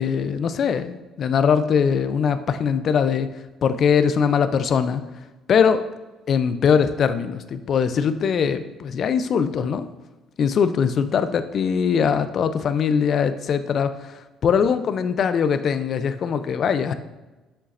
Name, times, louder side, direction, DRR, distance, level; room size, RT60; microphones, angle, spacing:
voice 1, 0.0-3.3 3.6-5.0 5.5-5.8 6.3-9.9 10.4-16.9, left 7 dB, 50° left, 11 dB, 0.5 m, -21 dB
7.1 x 6.7 x 2.5 m, 1.1 s
cardioid pair, 115°, 0 cm